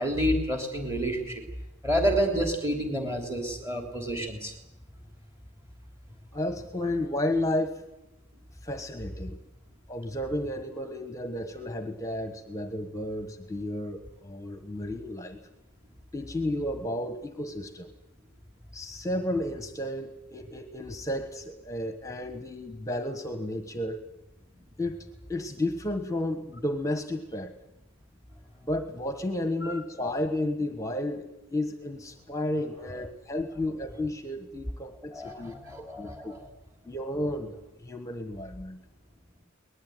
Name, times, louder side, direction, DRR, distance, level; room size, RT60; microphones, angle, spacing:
voice 1, 0.0-1.4 1.8-4.5 29.6-29.8 35.1-36.4, equal, 15° right, 3 dB, 3.2 m, -29 dB
voice 2, 6.3-7.8 8.6-9.4 9.9-15.4 16.1-17.9 18.7-24.0 24.8-27.5 28.6-36.3 36.8-38.8, left 1 dB, 15° left, 8 dB, 1.4 m, -32 dB
23.5 x 19.5 x 9.4 m, 0.93 s
head